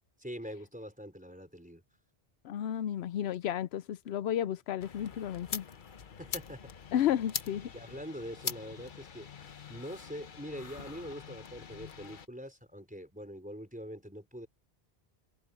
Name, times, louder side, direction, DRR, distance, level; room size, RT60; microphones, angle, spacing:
voice 1, 0.2-1.8 6.2-6.7 7.7-9.3 9.7-14.5, equal, 5° right, 4.1 m, -44 dB
voice 2, 2.4-5.7 6.9-7.7, left 10 dB, 85° left, 0.8 m, -32 dB
sound 1, 4.8-12.3, left 6 dB, 55° left, 1.0 m, -43 dB
omnidirectional pair, 1.1 m